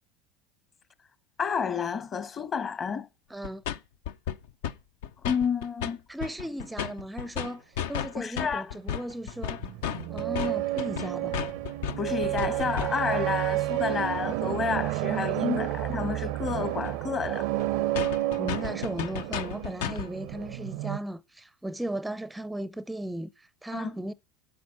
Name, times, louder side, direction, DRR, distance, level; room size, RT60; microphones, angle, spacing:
voice 1, 1.4-3.1 5.2-6.0 8.1-8.7 12.0-17.5 23.7-23.9, left 6 dB, 35° left, 1.2 m, -30 dB
voice 2, 3.3-3.6 6.1-9.6 10.1-11.4 18.4-24.1, right 1 dB, 5° right, 0.5 m, -36 dB
sound 1, 3.4-3.8 4.0-4.8 5.0-5.9 6.2-13.1 16.5-16.6 16.8-16.9 17.2-17.3 17.6-17.7 17.9-20.1, left 9 dB, 70° left, 0.6 m, -34 dB
sound 2, 9.3-21.0, right 16 dB, 65° right, 0.5 m, -31 dB
8.6 x 8.5 x 5.8 m
hypercardioid pair, 80°, 0 cm